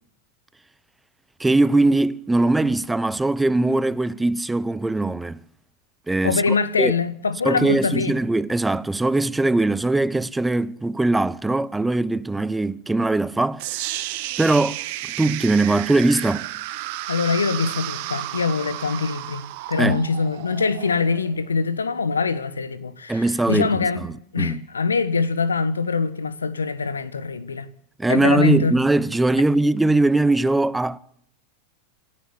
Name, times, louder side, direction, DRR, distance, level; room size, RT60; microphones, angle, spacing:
voice 1, 1.4-5.4 6.1-6.9 7.4-14.1 14.4-14.8 15.2-16.5 19.8-20.1 23.1-23.8 24.4-24.6 28.0-31.0, right 2 dB, 10° right, 0.8 m, -21 dB
voice 2, 6.2-8.2 17.1-24.0 24.3-27.7 28.1-28.7, left 4 dB, 80° left, 1.3 m, -23 dB
sound 1, 13.6-21.7, right 16 dB, 55° right, 1.7 m, -32 dB
27.0 x 12.5 x 9.8 m
figure-of-eight pair, 90°, 0 cm